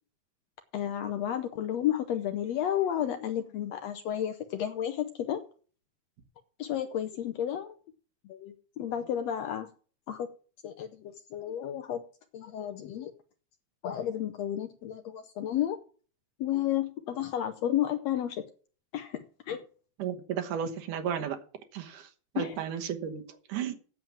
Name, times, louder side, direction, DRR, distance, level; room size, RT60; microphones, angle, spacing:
voice 1, 0.7-5.4 6.6-7.8 8.3-9.7 10.1-10.3 10.6-12.0 12.3-13.1 13.8-15.8 16.4-18.4 18.9-19.6 22.4-22.6, left 11 dB, 70° left, 9 dB, 1.6 m, -32 dB
voice 2, 20.0-21.4 21.7-22.1 22.3-23.7, right 8 dB, 75° right, 5 dB, 2.7 m, -33 dB
8.9 x 7.5 x 7.3 m, 0.40 s
omnidirectional pair, 3.7 m